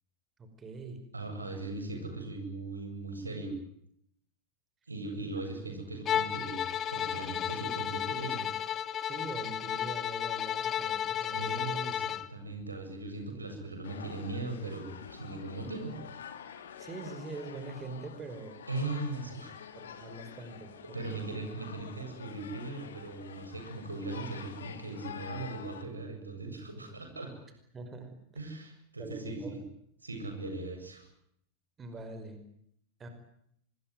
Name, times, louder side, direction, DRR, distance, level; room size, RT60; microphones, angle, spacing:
voice 1, 0.4-1.0 9.0-11.7 16.8-18.7 19.8-20.7 21.1-21.2 27.7-28.2 29.0-29.6 31.8-32.4 33.0-33.1, right 3 dB, 20° right, 7 dB, 5.2 m, -43 dB
voice 2, 1.1-3.6 4.9-8.5 11.3-16.0 18.7-19.5 20.8-27.3 28.3-29.6 30.0-31.1, right 2 dB, 80° right, 4 dB, 7.7 m, -39 dB
Bowed string instrument, 6.1-12.3, left 9 dB, 30° left, 1.2 m, -33 dB
sound 1, 13.8-25.8, left 7 dB, 65° left, 3.0 m, -47 dB
26.0 x 21.5 x 9.4 m, 0.72 s
figure-of-eight pair, 90°, 0 cm